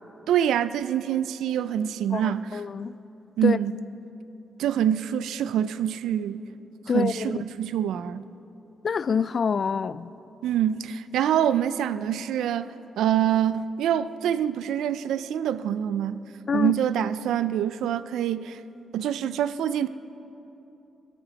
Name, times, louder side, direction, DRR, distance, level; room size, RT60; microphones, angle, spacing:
voice 1, 0.3-2.6 3.4-3.8 4.6-6.4 6.9-8.2 10.4-16.2 16.5-18.6 18.9-19.9, right 10 dB, 90° right, 14 dB, 0.4 m, -25 dB
voice 2, 2.5-2.9 3.4-3.6 6.9-7.4 8.8-10.1 16.5-16.7, left 6 dB, 55° left, 17 dB, 0.4 m, -26 dB
16.5 x 14.0 x 4.0 m, 3.0 s
cardioid pair, 60°, 0 cm